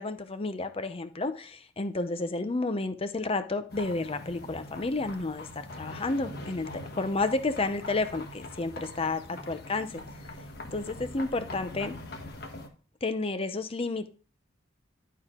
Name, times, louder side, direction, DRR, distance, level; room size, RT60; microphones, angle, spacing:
voice 1, 0.0-6.7 7.0-10.0 10.7-12.0 13.0-14.1, left 3 dB, 30° left, 10 dB, 0.7 m, -31 dB
sound 1, 3.7-12.7, left 1 dB, 55° left, 1.2 m, -43 dB
11.0 x 4.7 x 3.7 m, 0.38 s
head